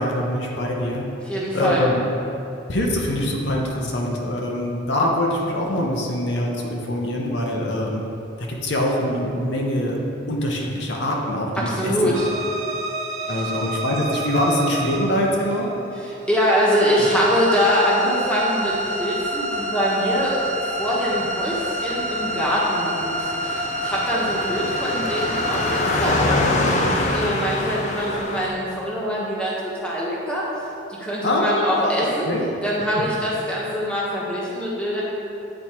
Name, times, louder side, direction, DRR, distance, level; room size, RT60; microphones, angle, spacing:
voice 1, 0.0-1.0 1.5-2.0 2.7-8.0 8.4-10.0 10.3-11.9 13.3-15.7 31.2-31.9 32.3-32.4, left 1 dB, 65° left, -1 dB, 0.8 m, -23 dB
voice 2, 1.2-1.8 11.6-12.3 13.3-13.4 15.9-30.4 30.9-32.3 32.6-35.0, equal, 5° left, -6 dB, 1.2 m, -24 dB
sound 1, 12.1-27.2, right 1 dB, 85° right, 1.1 m, -29 dB
Car passing by, 18.5-28.5, left 2 dB, 35° left, 0.5 m, -27 dB
8.7 x 4.4 x 4.4 m, 2.7 s
head